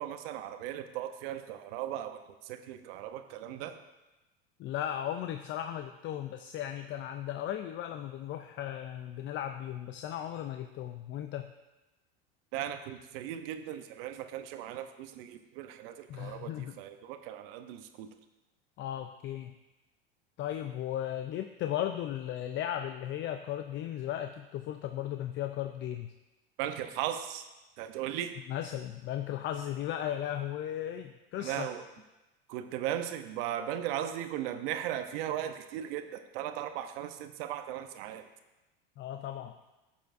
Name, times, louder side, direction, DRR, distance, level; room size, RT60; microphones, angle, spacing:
voice 1, 0.0-3.8 12.5-18.1 26.6-27.4 27.8-28.3 31.4-31.8 32.5-38.2, right 11 dB, 70° right, 9 dB, 0.8 m, -37 dB
voice 2, 4.6-11.5 16.1-16.8 18.8-19.5 20.4-26.1 28.5-31.7 39.0-39.6, left 11 dB, 40° left, 7 dB, 0.5 m, -36 dB
11.5 x 7.0 x 2.6 m, 1.1 s
hypercardioid pair, 95°, 30 cm